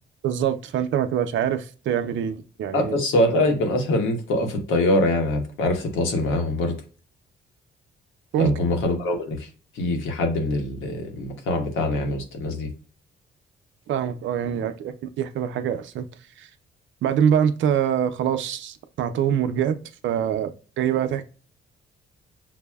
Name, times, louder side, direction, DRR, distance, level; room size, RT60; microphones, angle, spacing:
voice 1, 0.2-2.9 8.3-8.5 13.9-16.1 16.4-16.5 17.0-19.8 20.0-21.2, right 9 dB, 70° right, 0.5 m, -24 dB
voice 2, 2.7-6.8 8.4-9.5 9.7-12.7, left 1 dB, 85° left, 1.0 m, -23 dB
5.9 x 2.0 x 2.2 m
cardioid pair, 90°, 20 cm